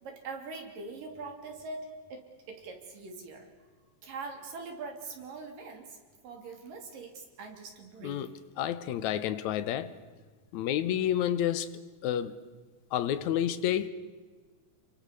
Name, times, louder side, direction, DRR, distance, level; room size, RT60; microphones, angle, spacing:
voice 1, 0.0-3.5 4.0-8.3, right 3 dB, 85° right, 4.8 m, -43 dB
voice 2, 8.6-9.9 10.5-12.4 12.9-13.9, left 10 dB, 70° left, 2.2 m, -30 dB
27.5 x 23.5 x 6.9 m
omnidirectional pair, 3.8 m